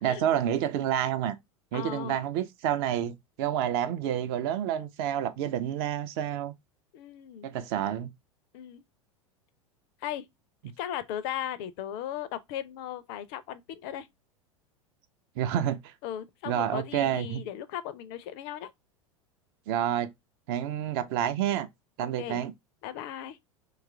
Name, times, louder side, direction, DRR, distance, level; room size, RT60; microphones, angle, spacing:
voice 1, 0.0-1.4 1.7-6.5 7.4-8.1 15.4-15.9 16.5-17.4 19.7-20.1 20.5-21.7 22.0-22.5, right 10 dB, 45° right, 0.5 m, -29 dB
voice 2, 1.7-2.2 6.9-7.5 8.5-8.8 10.0-10.3 10.8-14.1 16.0-18.7 22.2-22.4 22.8-23.4, left 11 dB, 40° left, 0.4 m, -37 dB
2.9 x 2.4 x 3.6 m
figure-of-eight pair, 85°, 18 cm